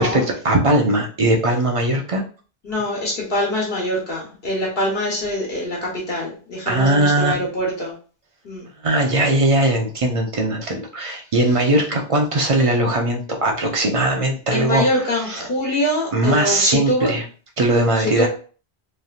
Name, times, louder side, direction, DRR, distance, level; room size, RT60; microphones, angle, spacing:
voice 1, 0.0-2.2 6.7-7.3 8.8-14.9 15.3-15.4 16.1-17.2 17.6-18.3, right 1 dB, 45° right, 2 dB, 0.5 m, -19 dB
voice 2, 2.6-7.9 8.4-8.6 14.5-17.1 17.9-18.3, left 1 dB, 70° left, -3 dB, 1.2 m, -24 dB
3.2 x 2.6 x 2.4 m, 0.39 s
omnidirectional pair, 1.0 m